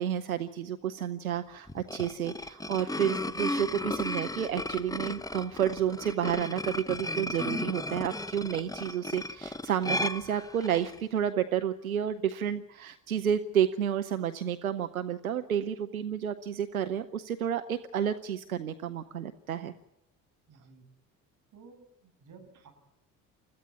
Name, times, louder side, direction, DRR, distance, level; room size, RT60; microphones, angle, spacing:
voice 1, 0.0-19.7, right 9 dB, 90° right, 9 dB, 0.8 m, -31 dB
sound 1, 1.7-11.0, left 2 dB, 10° left, 1.1 m, -35 dB
voice 2, 20.5-20.9 21.5-22.7, right 4 dB, 45° right, 3 dB, 7.8 m, -54 dB
29.5 x 14.5 x 7.3 m, 0.90 s
figure-of-eight pair, 55°, 41 cm